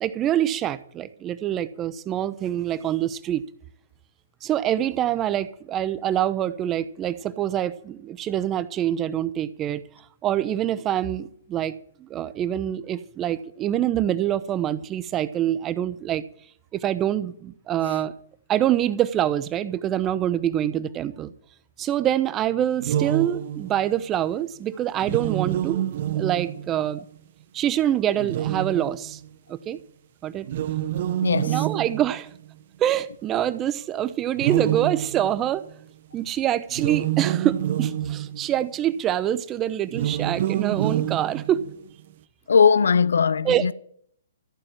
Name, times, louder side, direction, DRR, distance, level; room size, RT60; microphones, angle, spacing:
voice 1, 0.0-3.4 4.4-9.8 10.2-16.2 16.7-18.1 18.5-21.3 21.8-25.9 26.1-27.1 27.5-29.2 29.5-29.8 30.2-30.5 31.5-32.3 32.8-35.7 36.1-41.6 43.4-43.6, right 11 dB, 20° right, 0.9 m, -25 dB
sound 1, 22.8-23.9 25.0-27.0 28.1-29.3 30.4-32.5 34.4-35.7 36.7-38.6 39.9-41.9, right 12 dB, 50° right, 0.7 m, -27 dB
voice 2, 31.2-31.7 42.5-43.7, left 6 dB, 75° left, 0.7 m, -19 dB
14.0 x 8.8 x 7.8 m
hypercardioid pair, 130°, 0 cm